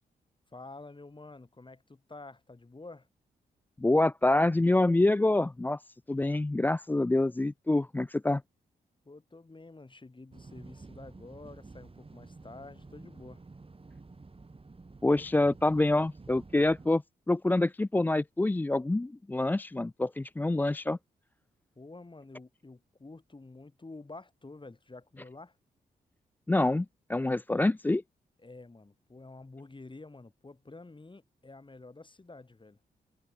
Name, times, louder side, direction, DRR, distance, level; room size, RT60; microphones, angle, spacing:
voice 1, 0.5-3.1 9.0-13.4 21.7-25.6 28.4-32.8, left 3 dB, 30° left, 6.7 m, -49 dB
voice 2, 3.8-5.8 6.1-8.4 15.0-21.0 26.5-28.0, left 2 dB, 10° left, 0.4 m, -26 dB
sound 1, 10.3-16.9, right 3 dB, 30° right, 4.3 m, -50 dB
supercardioid pair, 55°, 17 cm